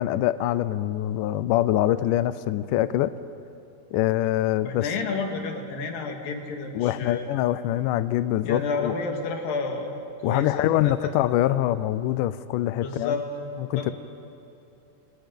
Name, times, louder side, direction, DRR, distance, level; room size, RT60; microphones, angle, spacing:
voice 1, 0.0-3.1 3.9-4.9 6.7-8.9 10.2-13.2 13.6-13.9, left 13 dB, 85° left, 14 dB, 1.8 m, -24 dB
voice 2, 4.6-7.3 8.4-10.0 10.2-11.1 12.8-13.2 13.8-13.9, left 4 dB, 65° left, 3 dB, 3.6 m, -30 dB
29.0 x 26.5 x 5.3 m, 2.8 s
omnidirectional pair, 4.5 m